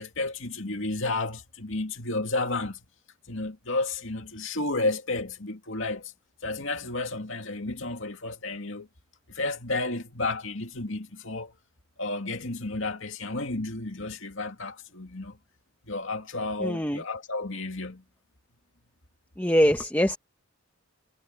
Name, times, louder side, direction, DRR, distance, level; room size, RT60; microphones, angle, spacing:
voice 1, 0.0-2.8 3.3-6.1 6.4-8.9 9.3-11.5 12.0-15.4 15.8-18.0, left 2 dB, 60° left, 2.5 m, -32 dB
voice 2, 16.6-17.0 19.4-20.2, equal, 10° left, 1.4 m, -23 dB
head